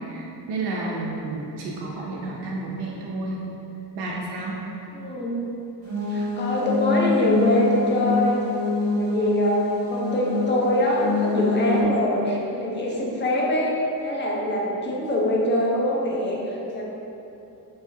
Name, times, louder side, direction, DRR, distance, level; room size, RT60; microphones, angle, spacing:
voice 1, 0.0-3.4 3.9-4.6, right 2 dB, 70° right, -4 dB, 0.6 m, -31 dB
voice 2, 4.9-5.4 6.1-8.4 9.0-9.6 9.9-13.7 14.0-16.9, left 1 dB, 25° left, -3 dB, 0.5 m, -24 dB
sound 1, 5.8-11.8, left 3 dB, 55° right, 1.1 m, -25 dB
3.9 x 2.7 x 2.5 m, 2.9 s
cardioid pair, 120°, 41 cm